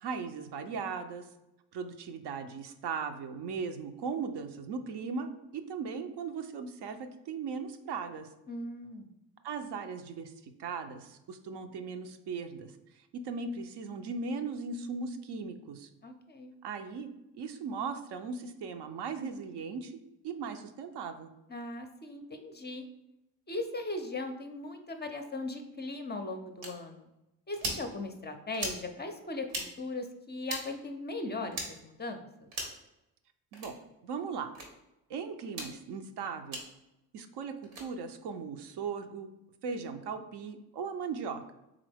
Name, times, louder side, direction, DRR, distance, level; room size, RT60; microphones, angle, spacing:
voice 1, 0.0-1.3 1.7-8.3 9.4-12.7 13.1-15.9 16.6-17.1 17.3-19.9 20.2-21.3 33.5-33.8 34.0-34.5 35.1-36.6 37.1-39.4 39.6-41.4, right 5 dB, 65° right, 7 dB, 0.6 m, -38 dB
voice 2, 8.5-9.1 16.0-16.5 21.5-22.9 23.5-27.1 27.5-32.5, left 2 dB, 25° left, 5 dB, 0.5 m, -39 dB
sound 1, 26.6-26.7 27.5-27.8 28.5-28.8 29.5-29.7 30.4-30.6 31.5-31.7 32.5-32.8 33.5-33.7 34.5-34.7 35.5-35.7 36.5-36.6 37.6-37.8, right 2 dB, 90° right, 1.2 m, -37 dB
3.8 x 3.4 x 3.4 m, 0.92 s
supercardioid pair, 60°, 45 cm